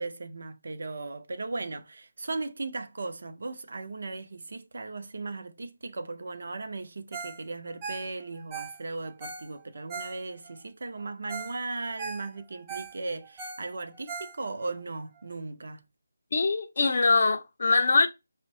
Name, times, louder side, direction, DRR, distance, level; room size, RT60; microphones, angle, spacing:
voice 1, 0.0-15.8, right 3 dB, 60° right, 0.5 m, -37 dB
Ringtone, 7.1-7.4 7.7-10.6 11.0-11.1 11.3-11.6 11.8-14.7 15.2-15.3, right 5 dB, 15° right, 0.5 m, -40 dB
voice 2, 16.3-18.1, left 3 dB, 50° left, 0.5 m, -23 dB
5.2 x 2.1 x 2.6 m
figure-of-eight pair, 170°, 0 cm